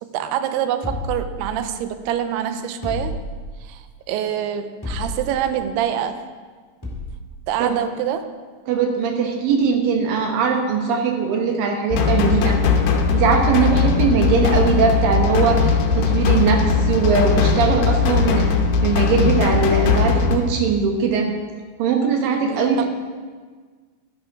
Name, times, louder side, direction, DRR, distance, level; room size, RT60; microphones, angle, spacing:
voice 1, 0.0-3.2 3.6-6.2 7.5-8.4 22.8-22.9, right 10 dB, 85° right, 9 dB, 2.5 m, -25 dB
sound 1, 0.8-1.9 2.8-3.7 4.8-5.5 6.8-7.3, left 1 dB, 25° left, 0.5 m, -31 dB
voice 2, 8.7-12.6 13.1-18.5 18.8-21.3 21.8-22.9, right 5 dB, 65° right, 2 dB, 2.5 m, -20 dB
sound 2, 11.9-20.4, left 5 dB, 75° left, 2.9 m, -19 dB
12.5 x 10.5 x 3.6 m, 1.5 s
omnidirectional pair, 5.0 m